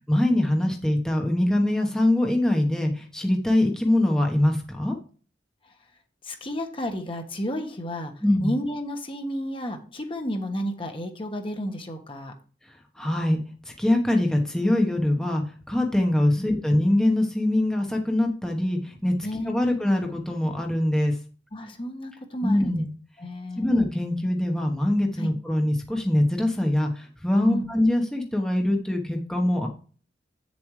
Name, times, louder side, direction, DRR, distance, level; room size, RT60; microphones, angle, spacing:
voice 1, 0.1-5.0 8.2-8.5 12.9-13.4 13.8-19.1 19.4-21.1 22.4-22.9 23.6-29.7, left 1 dB, 5° left, 1 dB, 1.1 m, -23 dB
voice 2, 6.2-12.3 16.4-16.5 19.2-19.9 21.5-22.9 23.2-23.8 25.2-25.3 27.4-27.7, equal, 30° left, 5 dB, 1.3 m, -32 dB
8.7 x 7.3 x 3.2 m, 0.39 s
head